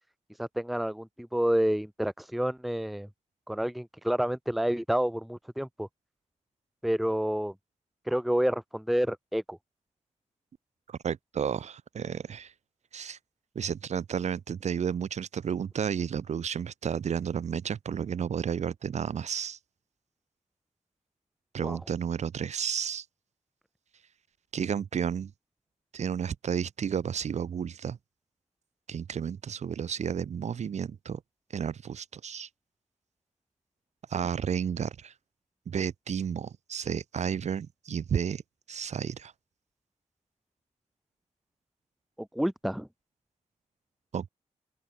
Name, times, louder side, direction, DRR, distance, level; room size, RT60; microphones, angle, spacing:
voice 1, 0.4-3.1 3.5-5.9 6.8-7.5 8.1-9.6 21.6-21.8 42.2-42.9, equal, ahead, 0.8 m, -29 dB
voice 2, 10.9-12.5 12.9-13.2 13.5-19.6 21.5-23.0 24.5-25.3 25.9-28.0 28.9-31.2 31.5-32.5 34.1-35.1 35.7-38.4 38.7-39.3 44.1-44.3, right 7 dB, 70° right, 2.8 m, -32 dB
open air
wide cardioid pair, 170°, 12 cm